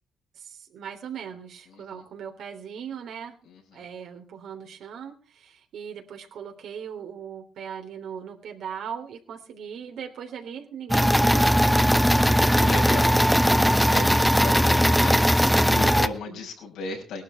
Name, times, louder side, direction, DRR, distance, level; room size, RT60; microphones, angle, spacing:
voice 1, 0.3-3.4 3.7-12.5 16.3-16.4, right 7 dB, 75° right, 4 dB, 3.4 m, -39 dB
voice 2, 1.7-2.0 3.4-3.8 11.7-13.3 13.7-17.2, left 3 dB, 85° left, 0 dB, 6.2 m, -36 dB
sound 1, 10.9-16.1, equal, ahead, 0.9 m, -19 dB
19.0 x 12.0 x 4.5 m, 0.37 s
cardioid pair, 90°, 0 cm